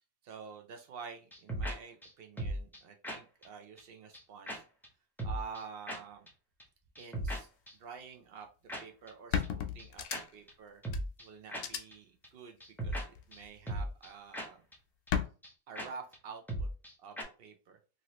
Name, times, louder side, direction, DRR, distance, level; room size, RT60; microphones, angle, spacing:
voice 1, 0.2-4.6 5.2-6.3 7.0-7.5 7.8-8.5 8.8-10.1 10.3-10.8 11.2-12.6 12.8-14.6 15.7-16.7 17.0-17.8, right 6 dB, 85° right, 4 dB, 0.5 m, -48 dB
sound 1, 1.3-1.7 2.0-2.1 2.4-2.8 3.0-3.2 3.4-3.5 3.8-3.9 4.1-4.2 4.5-4.6 4.8-4.9 5.2-5.6 5.9-6.0 6.3-6.4 6.6-6.7 6.9-7.4 7.7-7.8 8.7-8.8 9.1-9.2 9.4-9.5 9.8-9.9 10.1-10.2 10.5-10.6 10.8-11.2 11.5-11.6 11.9-12.0 12.2-12.3 12.6-13.0 13.3-13.4 13.7-14.1 14.3-14.5 14.7-14.8 15.1-15.2 15.4-15.5 15.7-15.9 16.1-16.2 16.5-16.9 17.2-17.3, right 1 dB, 5° left, 0.3 m, -37 dB
sound 2, 8.7-8.8 9.3-10.5 10.9-11.0 11.5-11.8 13.2-13.6 15.1-15.3, left 8 dB, 70° left, 0.9 m, -34 dB
2.9 x 2.6 x 2.9 m, 0.35 s
omnidirectional pair, 1.6 m